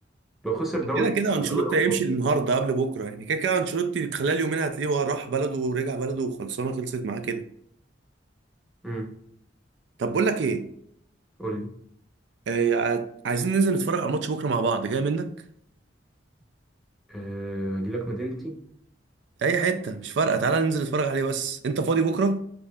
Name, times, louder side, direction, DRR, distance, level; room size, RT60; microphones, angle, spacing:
voice 1, 0.4-1.2 1.5-2.0 8.8-9.1 11.4-11.7 17.1-18.6, right 2 dB, ahead, 0.8 m, -30 dB
voice 2, 1.0-7.5 10.0-10.7 12.5-15.3 19.4-22.4, right 4 dB, 70° right, 0.4 m, -25 dB
6.7 x 2.7 x 2.3 m
head